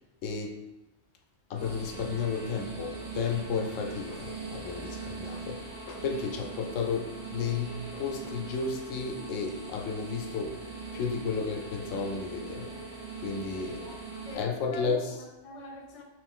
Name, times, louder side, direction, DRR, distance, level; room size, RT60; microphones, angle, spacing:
voice 1, 0.2-0.6 1.5-10.6 10.9-12.7 13.2-13.8 14.4-15.1, left 5 dB, 85° left, 2 dB, 0.9 m, -33 dB
sound 1, 1.5-14.3, right 3 dB, 30° right, 1.2 m, -40 dB
voice 2, 14.2-16.0, left 1 dB, 35° left, -1 dB, 0.6 m, -43 dB
3.2 x 3.0 x 3.6 m, 1.0 s
omnidirectional pair, 1.3 m